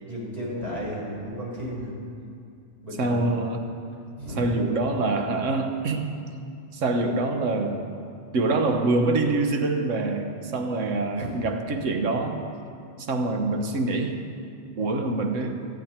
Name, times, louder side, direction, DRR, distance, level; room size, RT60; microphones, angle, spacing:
voice 1, 0.0-1.9 2.8-3.3 4.2-4.4 11.2-11.4 12.8-12.9, equal, 30° right, -6 dB, 4.6 m, -34 dB
voice 2, 3.0-3.7 4.4-6.1 6.7-7.8 8.3-12.4 13.0-14.2 14.8-15.6, right 2 dB, 80° right, 5 dB, 1.5 m, -25 dB
26.0 x 9.1 x 4.4 m, 2.5 s
omnidirectional pair, 1.3 m